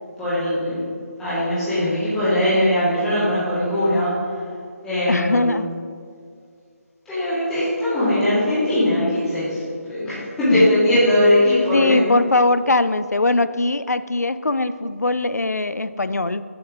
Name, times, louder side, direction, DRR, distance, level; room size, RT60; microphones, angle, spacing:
voice 1, 0.2-0.9 1.2-4.1 4.8-5.6 7.1-12.0, left 1 dB, 5° left, -14 dB, 1.9 m, -20 dB
voice 2, 5.1-5.7 10.5-10.7 11.7-16.4, left 2 dB, 90° left, 13 dB, 0.4 m, -21 dB
7.8 x 7.2 x 3.6 m, 2.2 s
figure-of-eight pair, 155°, 9 cm